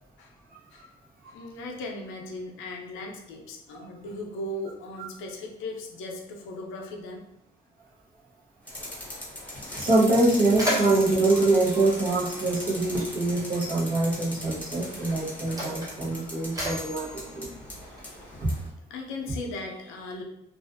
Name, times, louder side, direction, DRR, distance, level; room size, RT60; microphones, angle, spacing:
voice 1, 1.3-7.3 18.9-20.2, left 2 dB, 90° left, 1 dB, 0.5 m, -37 dB
sound 1, 8.7-18.7, left 1 dB, 10° left, 0.9 m, -39 dB
voice 2, 9.7-17.5 18.4-18.5, right 2 dB, 45° right, -6 dB, 0.9 m, -24 dB
Mechanisms, 10.5-12.8 13.8-13.9 14.8-18.3, equal, 15° right, 1.0 m, -35 dB
2.4 x 2.4 x 2.5 m, 0.82 s
cardioid pair, 90°, 20 cm